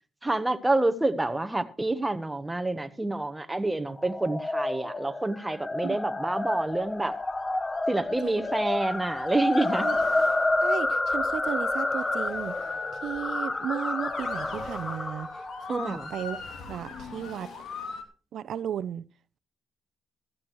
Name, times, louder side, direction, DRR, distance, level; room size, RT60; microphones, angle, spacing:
voice 1, 0.2-7.1 7.9-9.9 15.7-16.1, right 2 dB, 10° right, 1.1 m, -28 dB
sound 1, 4.0-16.4, left 2 dB, 20° left, 0.7 m, -29 dB
Motor vehicle (road) / Siren, 6.9-18.0, left 5 dB, 70° left, 2.5 m, -43 dB
voice 2, 10.6-16.4 16.7-17.5 18.3-19.1, right 9 dB, 65° right, 0.6 m, -35 dB
15.5 x 13.5 x 3.1 m
cardioid pair, 90°, 0 cm